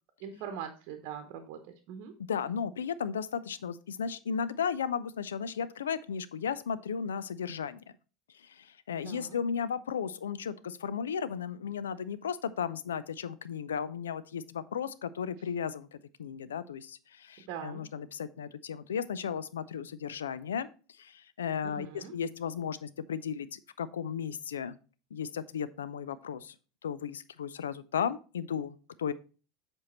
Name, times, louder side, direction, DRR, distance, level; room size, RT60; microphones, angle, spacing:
voice 1, 0.2-1.6 1.9-2.1 9.0-9.4 17.5-17.8 21.6-22.1, right 8 dB, 55° right, 6 dB, 0.9 m, -41 dB
voice 2, 2.3-7.8 8.3-15.9 16.2-20.7 21.0-24.7 25.1-26.5 26.8-29.1, left 7 dB, 80° left, 16 dB, 0.4 m, -35 dB
7.5 x 4.5 x 4.1 m, 0.35 s
hypercardioid pair, 80°, 0 cm